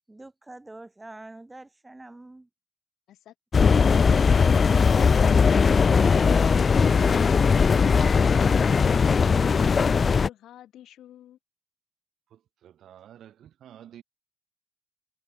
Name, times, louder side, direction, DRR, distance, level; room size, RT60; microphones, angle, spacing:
voice 1, 0.1-2.5, right 2 dB, 15° right, 4.8 m, -45 dB
voice 2, 3.1-5.4 9.2-11.4, left 12 dB, 75° left, 6.7 m, -46 dB
sound 1, 3.5-10.3, left 5 dB, 40° left, 0.3 m, -19 dB
voice 3, 12.3-14.0, right 10 dB, 70° right, 4.3 m, -49 dB
cardioid pair, 90°, 0 cm